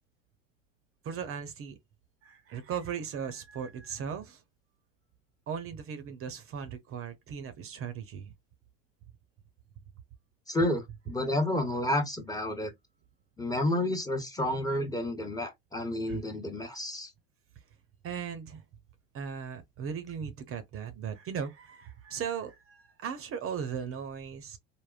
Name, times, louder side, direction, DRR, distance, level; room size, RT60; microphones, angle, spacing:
voice 1, 1.0-1.8 2.2-4.4 5.5-8.3 16.1-16.2 18.0-18.6 19.1-24.6, right 7 dB, 45° right, 0.6 m, -37 dB
voice 2, 10.5-12.7 13.4-17.1, left 1 dB, 10° left, 0.8 m, -30 dB
3.5 x 2.1 x 2.4 m
supercardioid pair, 90°, 31 cm